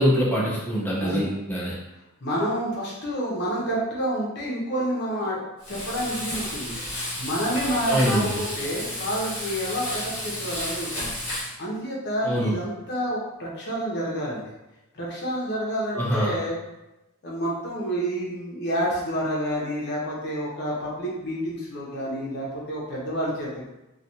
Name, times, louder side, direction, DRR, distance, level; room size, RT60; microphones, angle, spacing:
voice 1, 0.0-1.7 7.9-8.4 12.3-12.5 15.9-16.3, equal, 10° left, -7 dB, 0.9 m, -24 dB
voice 2, 0.9-1.3 2.2-5.4 5.7-6.7 7.2-11.0 11.6-14.4 14.9-16.6 17.2-23.6, equal, 50° left, -5 dB, 1.0 m, -29 dB
Frying (food), 5.6-11.5, left 1 dB, 30° left, 1.3 m, -32 dB
3.2 x 2.5 x 2.7 m, 1.0 s
head